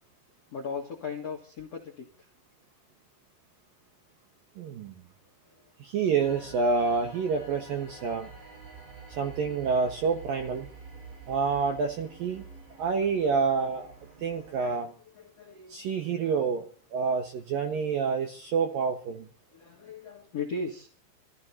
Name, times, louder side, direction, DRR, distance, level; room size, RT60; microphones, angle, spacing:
voice 1, 0.5-2.3 5.5-5.6 7.9-8.5 12.4-12.5 14.6-14.8 15.1-16.3 19.5-20.9, left 4 dB, 80° left, 4 dB, 1.4 m, -39 dB
voice 2, 4.6-4.9 5.8-8.3 9.1-10.7 11.3-12.4 12.8-13.9 14.2-14.9 15.7-19.3, right 5 dB, 70° right, 4 dB, 2.2 m, -28 dB
sound 1, 6.2-14.8, right 4 dB, 90° right, 8.6 m, -48 dB
27.0 x 15.0 x 2.8 m, 0.41 s
omnidirectional pair, 6.0 m